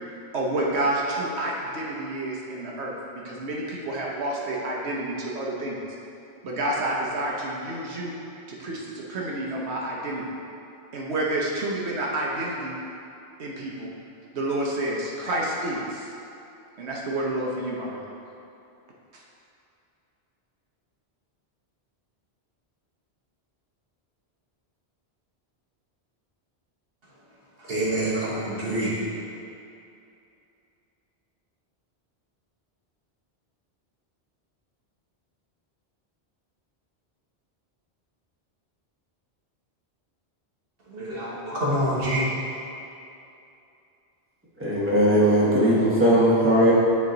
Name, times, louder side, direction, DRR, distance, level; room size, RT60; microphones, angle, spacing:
voice 1, 0.1-2.9 3.2-5.8 6.4-8.1 8.5-10.2 10.9-12.8 13.4-13.9 14.3-16.1 16.8-18.0 19.1-19.2, right 1 dB, 80° right, -3 dB, 1.1 m, -29 dB
voice 2, 27.6-29.2 40.9-42.5, right 1 dB, 60° right, -6 dB, 1.4 m, -27 dB
voice 3, 44.6-46.7, equal, 10° right, -7 dB, 1.2 m, -19 dB
9.3 x 3.1 x 3.8 m, 2.7 s
omnidirectional pair, 1.1 m